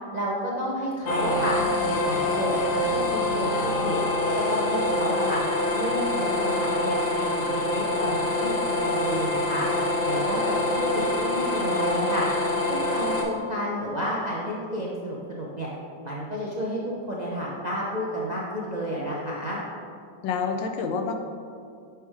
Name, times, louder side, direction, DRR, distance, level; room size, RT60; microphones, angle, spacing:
voice 1, 0.1-1.6 1.9-4.0 4.3-5.4 5.7-9.7 10.0-12.3 12.7-15.7 16.0-16.8 17.1-19.6, equal, 50° right, -5 dB, 0.5 m, -31 dB
sound 1, 1.1-13.2, left 2 dB, 60° left, 1.2 m, -25 dB
voice 2, 20.2-21.2, left 5 dB, 90° left, 5 dB, 1.5 m, -28 dB
9.2 x 3.5 x 4.7 m, 2.3 s
omnidirectional pair, 2.0 m